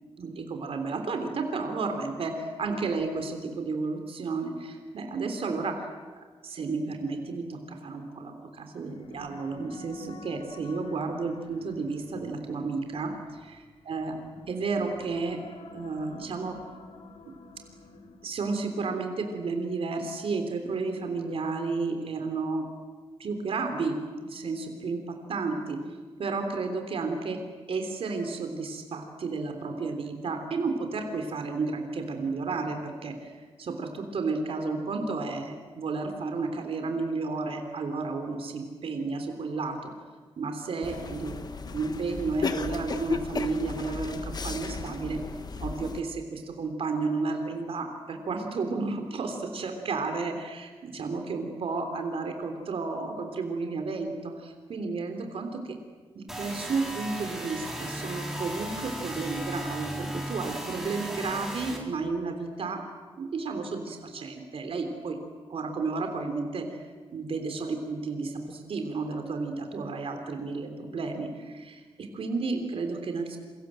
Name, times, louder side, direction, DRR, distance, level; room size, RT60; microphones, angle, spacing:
voice 1, 0.2-5.8 6.4-14.1 14.5-15.4 15.7-16.6 18.2-22.7 23.2-25.8 26.2-27.4 27.7-39.9 40.4-45.2 45.6-55.8 56.2-62.8 63.2-65.2 65.5-66.8 67.1-73.4, right 4 dB, 65° right, 5 dB, 3.5 m, -32 dB
sound 1, 8.8-18.6, left 3 dB, 70° left, 3.4 m, -50 dB
sound 2, 40.8-46.0, left 4 dB, 40° left, 1.3 m, -34 dB
sound 3, 56.3-61.8, equal, 5° right, 4.5 m, -36 dB
28.5 x 24.5 x 7.8 m, 1.4 s
wide cardioid pair, 150°, 10 cm